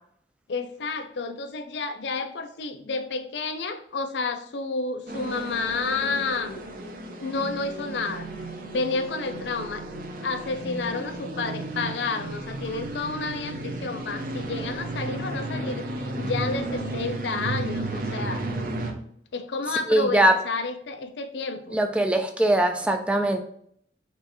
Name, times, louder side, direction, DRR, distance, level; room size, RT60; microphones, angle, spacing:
voice 1, 0.5-6.7 7.2-8.3 8.7-9.8 10.2-18.5 19.3-21.8, left 4 dB, 80° left, 8 dB, 0.5 m, -30 dB
sound 1, 5.1-18.9, right 2 dB, 50° right, 0.6 m, -33 dB
voice 2, 19.9-20.3 21.7-23.4, right 1 dB, 5° right, 5 dB, 0.3 m, -21 dB
4.3 x 3.1 x 3.0 m, 0.67 s
head